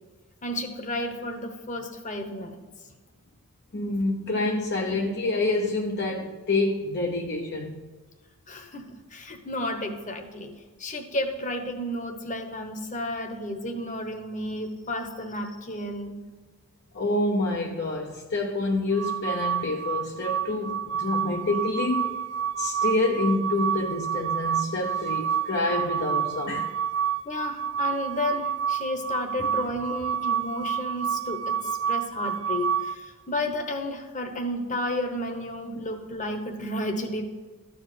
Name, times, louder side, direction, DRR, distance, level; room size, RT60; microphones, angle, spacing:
voice 1, 0.4-2.6 8.5-10.5 10.8-16.2 27.2-37.2, left 1 dB, 35° left, 1.2 m, -32 dB
voice 2, 3.7-7.9 16.9-22.2 22.6-26.7, left 2 dB, 50° left, 0.8 m, -27 dB
sound 1, 18.9-33.0, right 8 dB, 75° right, 0.5 m, -29 dB
13.0 x 4.9 x 8.0 m
head